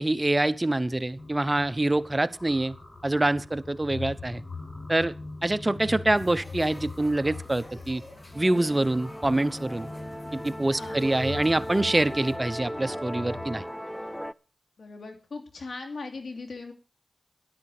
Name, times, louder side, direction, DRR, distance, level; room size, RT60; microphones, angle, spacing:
voice 1, 0.0-2.8 3.0-4.4 4.9-5.1 5.4-8.0 8.3-9.9 10.3-13.6, right 2 dB, 30° right, 13 dB, 0.9 m, -25 dB
sound 1, 1.2-13.6, left 3 dB, 50° left, 4.8 m, -42 dB
sound 2, 6.2-12.4, left 1 dB, 30° left, 3.3 m, -49 dB
Musical instrument, 8.3-14.3, equal, 5° left, 0.5 m, -37 dB
voice 2, 10.8-11.1 14.8-16.7, left 3 dB, 85° left, 4 dB, 2.9 m, -39 dB
13.0 x 11.5 x 4.9 m, 0.37 s
cardioid pair, 50°, 0 cm